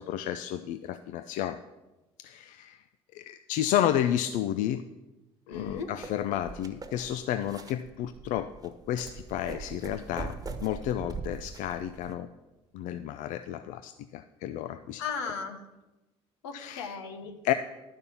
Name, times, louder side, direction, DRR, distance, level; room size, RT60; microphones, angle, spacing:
voice 1, 0.0-1.6 2.2-2.8 3.1-4.8 5.5-10.3 10.6-12.3 12.7-15.0 16.5-16.9 17.4-17.5, left 11 dB, 65° left, 11 dB, 0.5 m, -31 dB
voice 2, 5.5-5.9 15.0-15.6 16.4-17.4, left 5 dB, 85° left, 5 dB, 1.2 m, -36 dB
sound 1, 5.5-12.1, right 4 dB, 25° right, 1.2 m, -42 dB
11.0 x 5.4 x 7.0 m, 1.0 s
hypercardioid pair, 65°, 14 cm